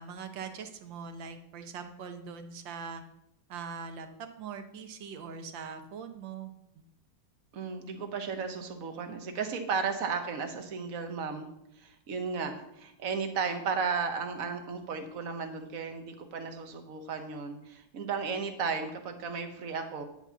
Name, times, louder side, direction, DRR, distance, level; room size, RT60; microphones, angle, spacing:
voice 1, 0.0-3.0 3.5-4.1 4.4-6.8, right 6 dB, 65° right, 7 dB, 1.5 m, -42 dB
voice 2, 7.5-11.5 11.8-20.0, right 5 dB, 50° right, 6 dB, 1.2 m, -34 dB
10.5 x 4.3 x 7.0 m, 0.80 s
omnidirectional pair, 2.3 m